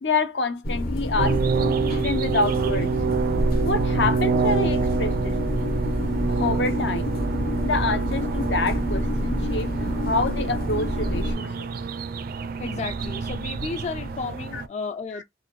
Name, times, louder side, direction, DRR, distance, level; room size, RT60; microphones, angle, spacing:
voice 1, 0.0-2.9 3.6-5.7 6.3-7.1 7.6-11.5 14.5-14.6 15.1-15.2, left 3 dB, 75° left, 0.8 m, -27 dB
sound 1, 0.6-11.3, left 1 dB, 55° left, 1.1 m, -27 dB
sound 2, 1.2-14.7, right 5 dB, 55° right, 0.4 m, -27 dB
voice 2, 12.6-15.2, left 4 dB, 40° left, 0.3 m, -33 dB
3.8 x 2.4 x 3.0 m
head